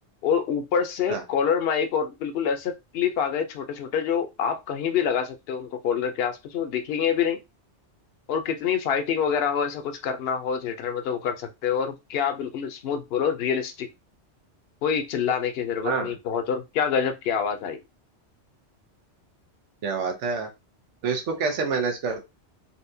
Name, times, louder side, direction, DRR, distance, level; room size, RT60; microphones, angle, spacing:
voice 1, 0.2-7.4 8.3-13.9 14.8-17.8, left 7 dB, 65° left, 7 dB, 0.8 m, -26 dB
voice 2, 15.8-16.1 19.8-20.5 21.0-22.2, right 5 dB, 90° right, 5 dB, 1.2 m, -27 dB
4.1 x 2.3 x 2.6 m, 0.23 s
omnidirectional pair, 1.2 m